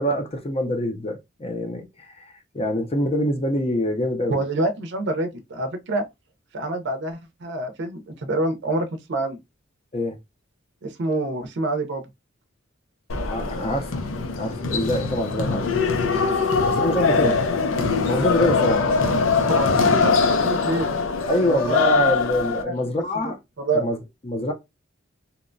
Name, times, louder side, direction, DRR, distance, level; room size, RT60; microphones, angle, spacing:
voice 1, 0.0-4.4 9.9-10.2 13.2-14.0 14.4-15.7 16.1-16.3 16.7-17.4 18.1-18.9 21.3-23.4 23.7-24.0 24.2-24.5, left 1 dB, 30° left, 0.5 m, -25 dB
voice 2, 4.3-6.0 6.5-9.4 10.8-12.0 16.6-16.9 17.2-17.3 19.4-21.0 21.4-22.0 22.6-22.7 23.6-23.9, right 1 dB, 60° right, 0.5 m, -26 dB
sound 1, 13.1-22.6, left 4 dB, 85° left, 0.5 m, -22 dB
2.8 x 2.1 x 2.5 m
head